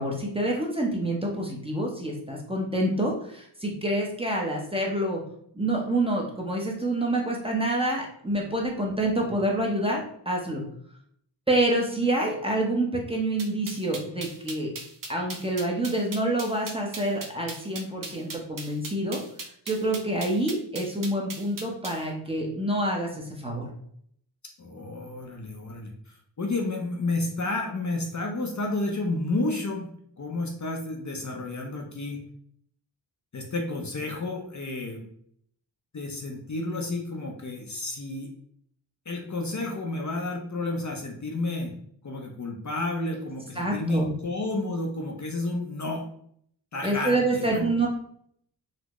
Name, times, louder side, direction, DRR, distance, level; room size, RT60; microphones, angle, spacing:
voice 1, 0.0-5.2 5.5-10.6 11.5-14.7 15.1-19.2 19.7-23.7 43.6-44.1 46.8-47.9, right 1 dB, 15° right, -1 dB, 0.8 m, -27 dB
sound 1, 13.4-22.0, right 3 dB, 45° right, 0.7 m, -38 dB
voice 2, 24.6-29.9 30.2-32.3 33.3-35.1 35.9-38.3 39.1-41.7 42.0-46.0 46.7-47.7, left 2 dB, 40° left, 1 dB, 0.7 m, -31 dB
4.1 x 2.1 x 3.0 m, 0.65 s
wide cardioid pair, 75°, 44 cm